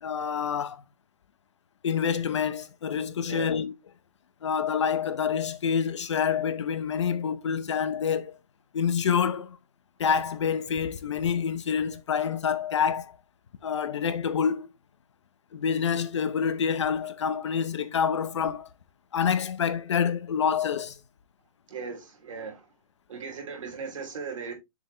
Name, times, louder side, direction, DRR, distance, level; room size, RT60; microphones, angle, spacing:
voice 1, 0.0-0.8 1.8-3.7 4.4-8.4 8.7-9.6 10.0-13.2 13.6-14.7 15.5-18.7 19.1-21.0, left 7 dB, 50° left, 0.7 m, -27 dB
voice 2, 21.7-22.7 23.1-24.5, right 5 dB, 60° right, 3.0 m, -37 dB
7.0 x 4.7 x 3.3 m
hypercardioid pair, 180°, 19 cm